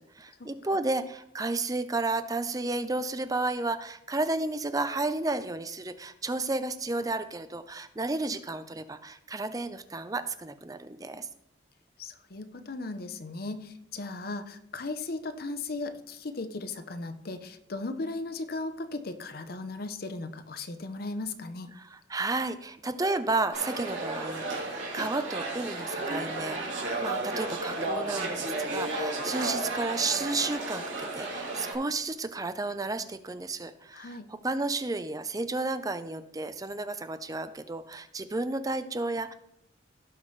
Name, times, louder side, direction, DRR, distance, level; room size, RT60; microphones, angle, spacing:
voice 1, 0.0-11.3 21.8-39.3, right 2 dB, 20° right, 11 dB, 0.5 m, -32 dB
voice 2, 12.0-21.7 33.9-34.3, left 3 dB, 50° left, 9 dB, 0.8 m, -37 dB
sound 1, 23.5-31.7, right 2 dB, 85° right, 2.8 m, -33 dB
17.0 x 5.7 x 3.2 m, 0.76 s
head